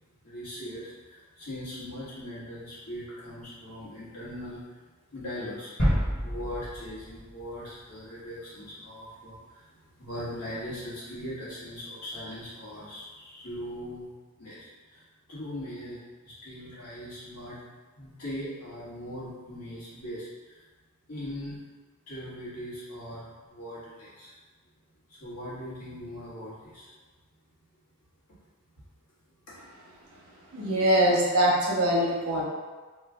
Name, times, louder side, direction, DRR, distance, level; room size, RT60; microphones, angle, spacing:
voice 1, 0.2-4.7 5.1-5.7 6.2-9.6 10.0-14.1 14.4-15.0 15.3-17.6 18.0-20.3 21.1-21.6 22.1-24.3 25.2-26.9, equal, 90° left, -9 dB, 1.4 m, -40 dB
sound 1, 5.8-7.7 8.1-8.2, equal, 45° left, 1.2 m, -29 dB
voice 2, 30.5-32.4, equal, 75° right, -3 dB, 0.9 m, -23 dB
3.1 x 2.2 x 3.5 m, 1.3 s
head